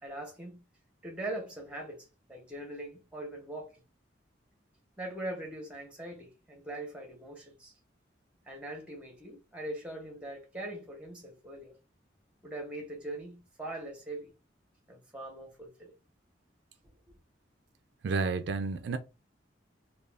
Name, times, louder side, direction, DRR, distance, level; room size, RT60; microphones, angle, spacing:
voice 1, 0.0-0.6 1.0-3.8 5.0-7.7 8.5-11.8 12.4-14.3 14.9-15.9, right 1 dB, 5° right, 0.8 m, -41 dB
voice 2, 18.0-19.0, right 4 dB, 65° right, 0.3 m, -30 dB
2.4 x 2.3 x 3.3 m
head